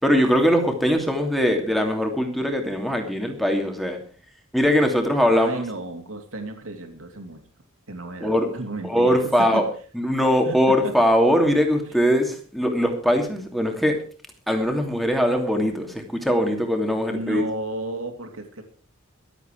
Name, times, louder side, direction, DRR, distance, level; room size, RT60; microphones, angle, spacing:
voice 1, 0.0-4.0 4.5-5.6 8.2-8.5 8.8-9.6 9.9-14.0 14.5-17.4, equal, ahead, 3 dB, 2.7 m, -21 dB
voice 2, 5.3-7.4 7.9-9.6 10.4-10.9 17.1-18.6, right 2 dB, 65° right, 4 dB, 3.0 m, -33 dB
23.5 x 8.2 x 4.7 m, 0.41 s
head